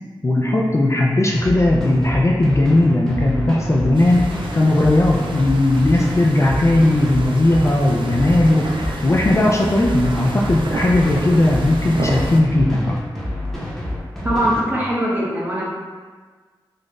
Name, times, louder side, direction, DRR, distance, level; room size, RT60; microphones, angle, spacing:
voice 1, 0.2-13.0, left 1 dB, 35° left, -2 dB, 0.4 m, -17 dB
sound 1, 1.4-14.6, left 1 dB, 5° left, 1.0 m, -28 dB
sound 2, 3.9-12.4, right 1 dB, 70° right, 0.4 m, -31 dB
voice 2, 14.2-15.6, equal, 25° right, -6 dB, 1.1 m, -21 dB
4.1 x 2.4 x 3.1 m, 1.4 s
cardioid pair, 65°, 9 cm